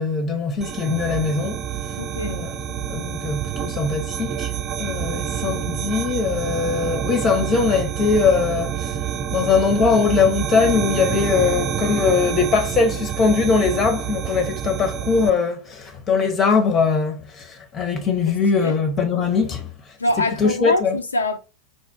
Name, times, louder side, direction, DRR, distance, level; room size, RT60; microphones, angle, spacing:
voice 1, 0.0-1.6 2.2-2.5 2.9-4.5 4.8-8.9 9.3-19.7 20.4-21.0, left 5 dB, 25° left, 0.9 m, -21 dB
sound 1, 0.6-15.3, right 9 dB, 25° right, 0.5 m, -27 dB
voice 2, 2.0-2.4 18.5-18.8 20.0-21.4, left 2 dB, 75° left, 0.4 m, -24 dB
4.1 x 2.4 x 3.6 m
figure-of-eight pair, 90°, 0 cm